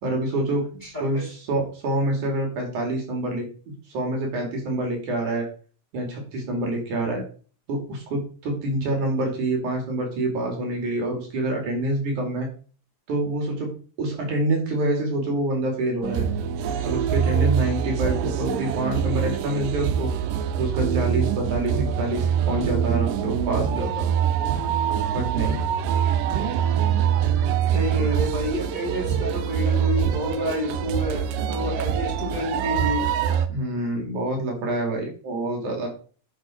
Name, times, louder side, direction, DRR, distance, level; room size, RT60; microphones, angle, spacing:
voice 1, 0.0-0.6 1.0-3.5 3.9-5.5 5.9-7.2 7.7-12.5 13.1-13.7 14.0-16.2 16.8-20.1 20.6-24.1 25.1-25.6 28.0-28.1 33.5-35.9, right 1 dB, 65° right, 1 dB, 4.0 m, -26 dB
voice 2, 0.8-1.2 17.3-17.7 27.7-33.1, left 1 dB, 15° left, -3 dB, 3.1 m, -29 dB
sound 1, 16.0-33.5, right 8 dB, 90° right, 2.5 m, -24 dB
10.5 x 6.2 x 4.4 m, 0.39 s
omnidirectional pair, 3.8 m